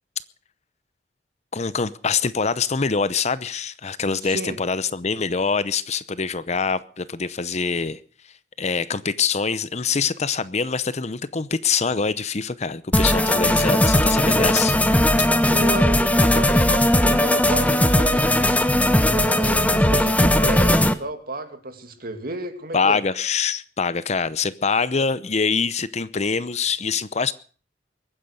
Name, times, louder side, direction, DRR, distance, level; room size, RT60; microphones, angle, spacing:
voice 1, 1.5-8.0 8.6-14.8 22.7-27.3, left 5 dB, 40° left, 0.7 m, -24 dB
voice 2, 4.2-4.6 15.5-18.4 19.0-23.0, right 2 dB, 55° right, 2.4 m, -32 dB
sound 1, 12.9-20.9, left 1 dB, 10° left, 1.0 m, -18 dB
22.5 x 9.6 x 6.5 m
head